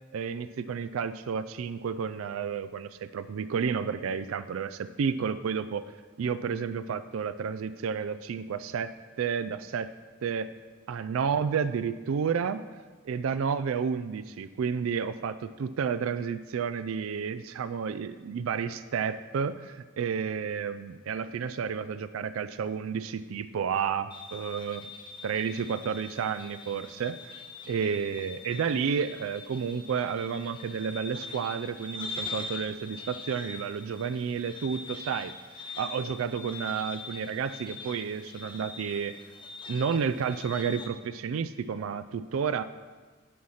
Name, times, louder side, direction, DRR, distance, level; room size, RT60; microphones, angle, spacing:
voice 1, 0.1-5.8 6.2-9.9 10.2-10.5 10.9-12.6 13.0-24.9 25.2-35.3 35.8-39.2 39.7-42.6, right 6 dB, 90° right, 12 dB, 0.4 m, -31 dB
sound 1, 24.1-40.9, left 3 dB, 25° left, 0.8 m, -43 dB
10.0 x 6.4 x 5.6 m, 1.4 s
head